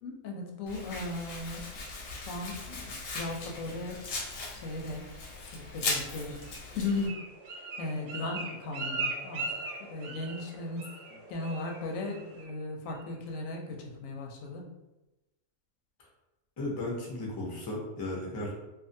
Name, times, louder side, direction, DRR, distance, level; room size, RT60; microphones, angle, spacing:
voice 1, 0.0-1.7 2.1-4.0 4.5-5.1 5.5-6.4 6.7-7.2 7.8-9.5 9.9-14.7, left 2 dB, 85° left, 0 dB, 1.0 m, -37 dB
Domestic sounds home sounds, 0.7-7.1, left 3 dB, 60° left, 0.7 m, -38 dB
Bird, 6.4-10.5 10.8-11.2 11.4-11.8 12.1-12.5 12.9-13.0, right 3 dB, 70° right, 0.8 m, -38 dB
sound 1, 6.7-12.4, right 1 dB, 55° right, 0.4 m, -52 dB
voice 2, 16.6-18.5, left 1 dB, 35° left, -2 dB, 0.3 m, -35 dB
2.5 x 2.4 x 2.6 m, 1.0 s
omnidirectional pair, 1.3 m